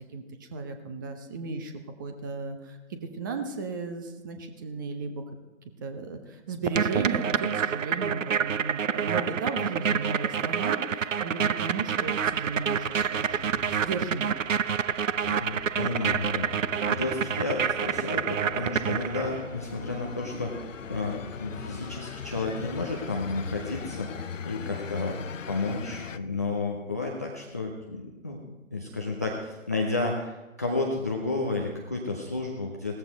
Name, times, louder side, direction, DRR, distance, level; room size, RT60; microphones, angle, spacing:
voice 1, 0.1-1.7 2.0-5.2 5.8-14.3, right 4 dB, 15° right, 6 dB, 0.8 m, -35 dB
sound 1, 6.7-19.5, right 7 dB, 65° right, 0.6 m, -28 dB
sound 2, 12.0-26.2, left 7 dB, 65° left, 0.7 m, -41 dB
voice 2, 15.3-16.6 16.9-25.2 25.5-28.4 28.7-33.0, left 3 dB, 15° left, -2 dB, 0.5 m, -32 dB
17.5 x 14.0 x 4.1 m, 1.1 s
figure-of-eight pair, 140°, 41 cm